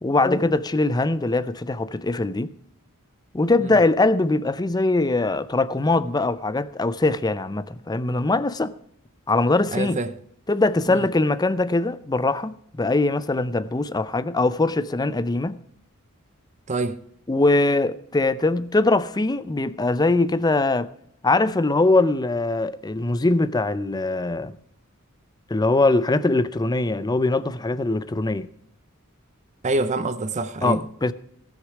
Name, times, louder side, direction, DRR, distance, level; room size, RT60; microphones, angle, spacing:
voice 1, 0.0-2.5 3.3-8.7 9.3-10.0 10.5-15.6 17.3-20.9 21.2-24.6 25.5-28.5 30.6-31.1, left 2 dB, 20° left, 0.5 m, -22 dB
voice 2, 9.7-10.1 10.9-11.1 16.7-17.0 29.6-30.8, right 2 dB, 35° right, 0.6 m, -26 dB
18.0 x 6.6 x 4.9 m
head